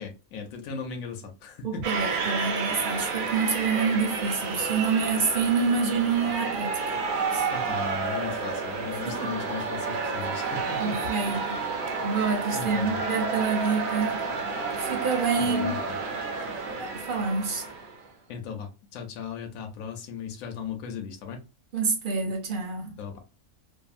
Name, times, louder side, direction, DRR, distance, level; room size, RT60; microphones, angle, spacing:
voice 1, 0.0-1.8 2.1-2.5 7.5-10.9 11.3-11.5 12.5-13.0 15.4-15.9 18.3-21.4 23.0-23.2, left 6 dB, 85° left, 1.0 m, -37 dB
voice 2, 1.6-6.8 7.3-7.5 9.0-9.3 10.8-11.6 12.0-14.2 14.8-15.7 16.6-17.6 21.7-23.0, right 5 dB, 45° right, 0.8 m, -27 dB
sound 1, 1.8-18.1, right 4 dB, 90° right, 1.1 m, -30 dB
2.7 x 2.6 x 2.4 m
omnidirectional pair, 1.4 m